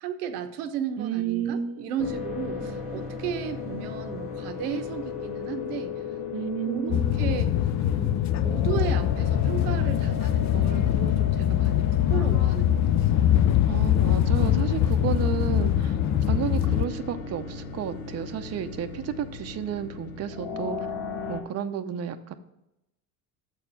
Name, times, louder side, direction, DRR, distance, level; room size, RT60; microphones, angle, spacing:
voice 1, 0.0-6.0 6.7-7.5 7.9-13.2, right 7 dB, 80° right, 7 dB, 0.9 m, -34 dB
voice 2, 1.0-1.9 2.6-2.8 6.3-7.4 13.6-15.9 16.3-20.8 21.3-22.3, right 8 dB, 35° right, 8 dB, 0.6 m, -32 dB
sound 1, 2.0-21.4, left 5 dB, 70° left, 1.6 m, -36 dB
sound 2, 6.9-16.8, left 11 dB, 40° left, 0.5 m, -23 dB
7.2 x 4.4 x 6.9 m, 0.87 s
supercardioid pair, 80°, 46 cm